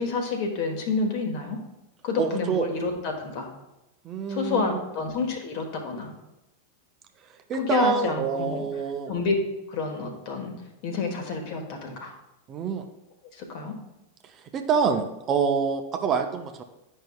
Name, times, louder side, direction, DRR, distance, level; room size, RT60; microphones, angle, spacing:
voice 1, 0.0-1.6 2.0-3.5 4.3-6.1 7.5-8.6 9.1-9.4 9.7-10.5 10.8-12.1 13.3-13.7, left 4 dB, 45° left, 3 dB, 1.4 m, -29 dB
voice 2, 2.2-2.7 4.0-4.8 7.5-9.1 12.5-12.8 14.5-16.6, right 6 dB, 30° right, 5 dB, 0.6 m, -26 dB
10.5 x 5.4 x 2.3 m, 0.96 s
figure-of-eight pair, 90°, 0 cm